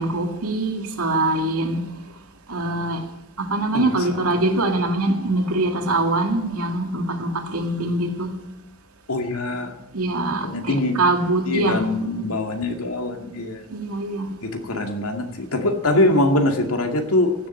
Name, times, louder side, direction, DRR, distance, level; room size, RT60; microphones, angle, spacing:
voice 1, 0.0-1.8 2.5-3.0 3.4-8.3 9.9-11.9 13.7-14.3 14.7-14.8, right 2 dB, 80° right, 4 dB, 2.2 m, -23 dB
voice 2, 3.7-4.2 4.7-4.8 9.1-9.8 10.3-11.0 11.5-13.7 14.4-17.3, left 1 dB, 80° left, 4 dB, 2.2 m, -23 dB
15.5 x 7.6 x 8.9 m, 0.83 s
head